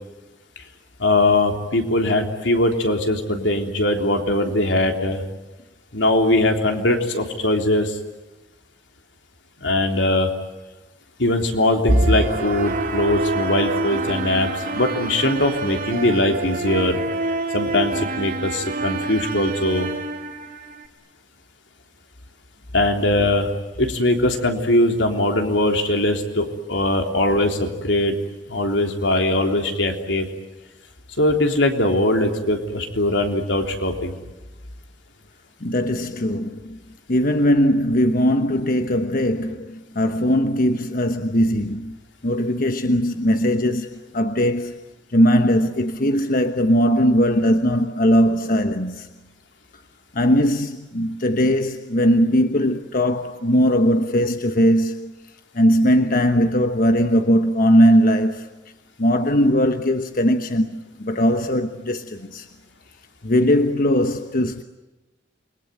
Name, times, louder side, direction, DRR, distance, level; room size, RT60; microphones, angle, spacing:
voice 1, 1.0-5.2 5.9-8.0 9.6-10.3 11.2-17.0 17.5-19.9 22.7-23.5 23.8-28.2 28.5-30.3 31.2-34.1, left 1 dB, 85° left, 3.5 m, -21 dB
sound 1, 11.9-20.9, right 2 dB, 50° right, 2.1 m, -26 dB
voice 2, 35.6-36.8 37.1-41.9 42.2-44.8 45.1-49.1 50.1-55.1 55.5-58.5 59.0-62.4 63.2-64.6, equal, 50° left, 1.2 m, -19 dB
29.0 x 22.0 x 9.4 m
head